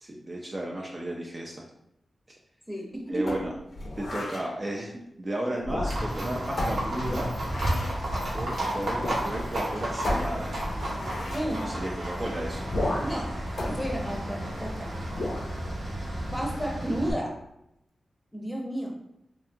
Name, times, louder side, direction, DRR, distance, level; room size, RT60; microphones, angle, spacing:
voice 1, 0.0-1.6 3.1-3.5 4.0-7.3 8.3-10.6 11.6-12.7, right 1 dB, 35° right, -2 dB, 0.4 m, -34 dB
voice 2, 2.7-3.4 11.3-11.7 13.0-13.3 13.6-14.9 16.3-17.4 18.3-19.0, equal, 10° left, -2 dB, 0.7 m, -32 dB
sound 1, 3.3-4.5 5.6-6.2 6.6-8.0 9.0-9.3 9.6-9.7 10.0-11.5 12.7-13.2 13.6-14.7 15.1-15.5, left 1 dB, 65° left, 0.5 m, -33 dB
Livestock farm animals working animals, 5.9-17.1, right 1 dB, 80° right, 0.8 m, -32 dB
2.7 x 2.2 x 2.6 m, 0.82 s
cardioid pair, 55°, 0 cm